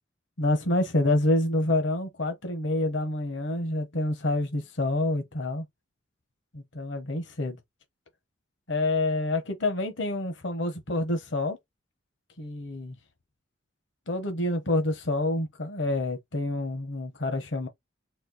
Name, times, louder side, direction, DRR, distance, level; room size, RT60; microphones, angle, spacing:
voice 1, 0.4-5.6 6.5-7.6 8.7-11.6 12.4-12.9 14.1-17.7, left 2 dB, 70° left, 1.0 m, -27 dB
4.4 x 2.3 x 4.0 m
head